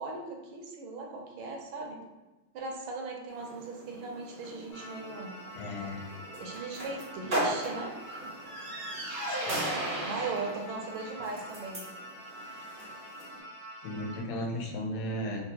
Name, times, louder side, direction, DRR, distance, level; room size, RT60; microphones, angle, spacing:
voice 1, 0.0-2.0 2.5-5.4 6.4-8.0 10.0-11.8, right 3 dB, 80° right, 1 dB, 1.4 m, -38 dB
sound 1, 3.3-13.4, right 1 dB, 50° right, 0.5 m, -37 dB
sound 2, 4.7-14.2, equal, 30° left, 0.6 m, -46 dB
voice 2, 5.6-6.0 9.3-9.6 13.8-15.4, left 1 dB, 85° left, 0 dB, 1.5 m, -35 dB
3.7 x 2.1 x 2.7 m, 1.1 s
omnidirectional pair, 2.2 m